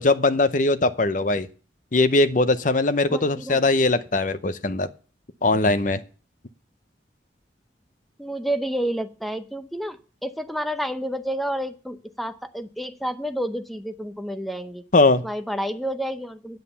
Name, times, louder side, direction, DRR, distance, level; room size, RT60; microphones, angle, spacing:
voice 1, 0.0-1.5 1.9-4.9 5.4-6.0 14.9-15.2, left 2 dB, 45° left, 13 dB, 0.7 m, -20 dB
voice 2, 3.1-3.6 8.2-14.8 15.2-16.6, equal, ahead, 10 dB, 0.7 m, -30 dB
9.1 x 7.6 x 6.9 m, 0.38 s
head